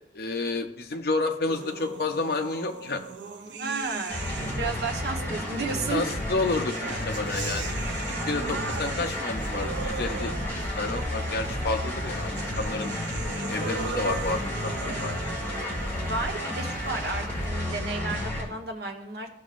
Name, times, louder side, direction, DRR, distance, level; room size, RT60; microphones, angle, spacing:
voice 1, 0.1-3.0 5.9-7.7 8.1-10.3 10.8-12.9 13.5-15.2, left 3 dB, 55° left, 4 dB, 0.6 m, -30 dB
sound 1, 1.5-4.9 5.9-17.5, right 4 dB, 75° right, 0.7 m, -39 dB
voice 2, 3.6-6.2 16.0-19.3, right 3 dB, 60° right, 1 dB, 1.1 m, -33 dB
sound 2, 4.1-18.4, left 1 dB, 15° left, 2.1 m, -31 dB
13.0 x 6.1 x 2.5 m, 0.86 s
head